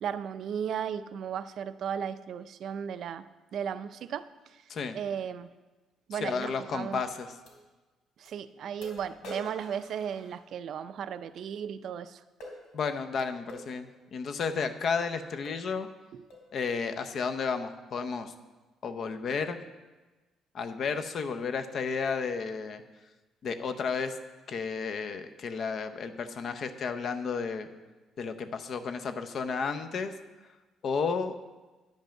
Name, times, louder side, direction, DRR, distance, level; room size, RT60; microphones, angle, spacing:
voice 1, 0.0-3.2 3.5-4.2 4.9-5.5 6.1-7.0 8.2-12.2 16.1-16.2, right 8 dB, 55° right, 13 dB, 0.4 m, -35 dB
voice 2, 6.1-7.4 12.7-15.9 16.5-18.3 18.8-19.6 20.5-22.8 23.4-24.2 24.5-27.7 28.2-30.1 30.8-31.3, left 5 dB, 45° left, 8 dB, 0.7 m, -32 dB
sound 1, 6.4-6.5 7.5-7.6 8.3-8.4 8.8-10.8 12.4-12.6 13.5-13.7 14.5-14.6 15.0-15.1 15.4-15.7 16.3-16.5, left 1 dB, 85° left, 3.2 m, -46 dB
10.5 x 5.4 x 7.5 m, 1.2 s
cardioid pair, 150°, 0 cm